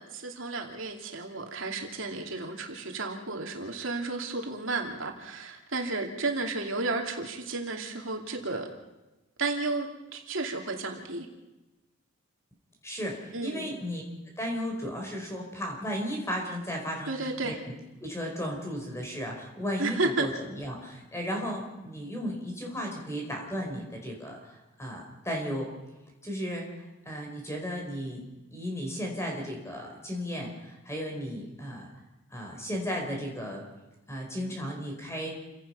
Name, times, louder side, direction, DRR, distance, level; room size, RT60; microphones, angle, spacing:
voice 1, 0.0-8.7 9.4-9.9 10.1-11.3 13.3-13.8 17.1-17.6 19.8-20.3, right 3 dB, 70° right, 2 dB, 2.8 m, -32 dB
voice 2, 12.8-14.0 14.4-17.1 17.4-17.5 18.0-25.7 26.2-28.2 28.5-31.9 32.3-33.6 34.1-35.4, equal, 15° left, 1 dB, 4.3 m, -35 dB
28.5 x 17.5 x 5.6 m, 1.0 s
head